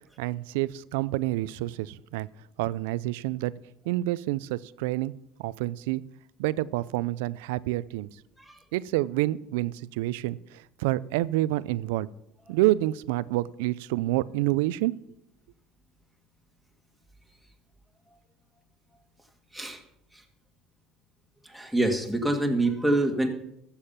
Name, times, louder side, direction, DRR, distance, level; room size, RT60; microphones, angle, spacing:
voice 1, 0.2-2.3 2.6-3.5 3.9-5.1 5.4-6.0 6.4-8.1 8.7-12.1 12.5-14.9, right 17 dB, 85° right, 18 dB, 0.4 m, -28 dB
voice 2, 21.4-23.3, right 1 dB, ahead, 1 dB, 2.1 m, -26 dB
13.5 x 7.2 x 5.8 m, 0.80 s
supercardioid pair, 95°, 0 cm